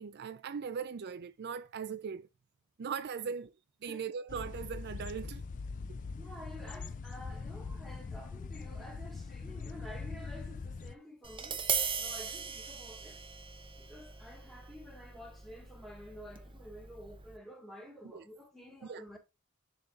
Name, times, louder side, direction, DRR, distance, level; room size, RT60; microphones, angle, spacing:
voice 1, 0.0-2.3 2.8-3.5 3.8-5.4 18.1-18.2 18.8-19.0, right 6 dB, 50° right, 0.4 m, -39 dB
sound 1, 4.3-10.9, left 4 dB, 35° left, 0.3 m, -42 dB
voice 2, 6.2-11.7 12.0-13.2 13.8-19.2, equal, ahead, 1.8 m, -50 dB
Tap, 11.2-17.4, right 6 dB, 25° right, 0.8 m, -39 dB
10.5 x 4.1 x 2.4 m
head